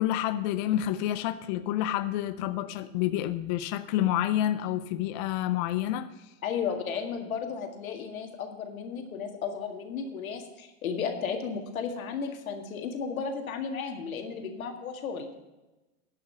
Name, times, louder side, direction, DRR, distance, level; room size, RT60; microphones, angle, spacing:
voice 1, 0.0-6.1, left 12 dB, 35° left, 11 dB, 0.4 m, -28 dB
voice 2, 6.4-15.3, left 6 dB, 85° left, 4 dB, 2.0 m, -34 dB
11.0 x 5.8 x 7.8 m, 1.1 s
supercardioid pair, 140°, 40 cm